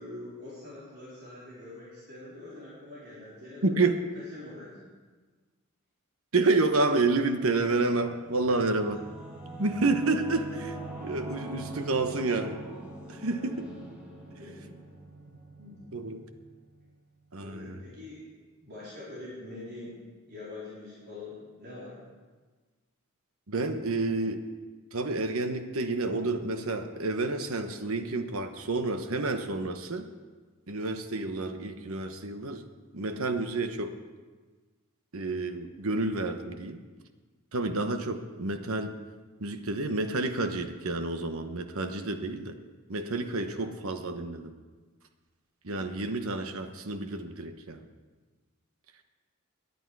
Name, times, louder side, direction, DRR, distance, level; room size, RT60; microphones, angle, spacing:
voice 1, 0.0-3.9 4.1-4.9 14.4-14.8 15.6-16.2 17.4-18.2 18.6-22.0 43.4-43.7, left 2 dB, 45° right, -8 dB, 4.0 m, -44 dB
voice 2, 3.6-4.0 6.3-9.0 9.6-12.6 13.1-13.7 15.9-16.2 17.3-17.8 23.5-24.4 24.9-30.1 30.7-32.6 32.9-33.9 35.1-36.8 37.5-38.9 39.4-42.6 42.9-44.5 45.6-47.8, right 3 dB, 70° right, 8 dB, 1.1 m, -29 dB
Singing / Musical instrument, 7.8-16.9, right 2 dB, 5° right, 2.4 m, -43 dB
18.5 x 11.0 x 4.8 m, 1.4 s
head